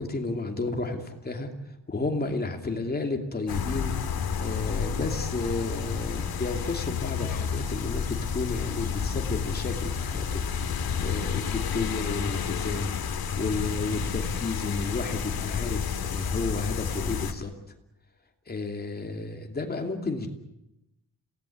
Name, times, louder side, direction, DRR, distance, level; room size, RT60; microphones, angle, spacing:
voice 1, 0.0-1.5 1.9-3.9 4.4-10.5 10.7-12.9 13.3-17.5 18.5-20.3, left 3 dB, 25° left, 4 dB, 2.8 m, -32 dB
sound 1, 3.5-17.3, left 7 dB, 75° left, 2.2 m, -30 dB
28.0 x 18.0 x 8.5 m, 0.88 s
wide cardioid pair, 180°, 37 cm